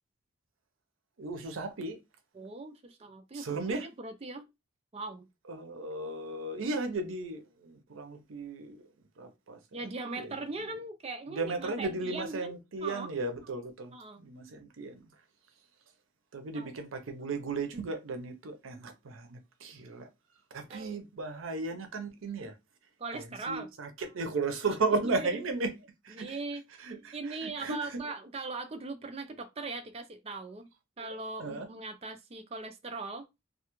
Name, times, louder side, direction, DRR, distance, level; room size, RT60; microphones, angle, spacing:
voice 1, 1.2-2.0 3.3-3.9 5.5-8.8 9.2-10.7 11.3-15.1 16.3-20.1 20.5-22.5 23.1-25.7 26.0-26.4 26.8-28.0 31.0-31.7, right 3 dB, 85° right, 0.6 m, -35 dB
voice 2, 2.3-4.4 4.9-5.3 9.7-13.1 13.9-14.2 16.5-16.7 20.7-21.0 23.0-23.7 25.2-25.3 26.1-26.6 27.1-30.7 31.0-33.3, right 3 dB, 30° right, 0.4 m, -40 dB
2.4 x 2.3 x 2.9 m
head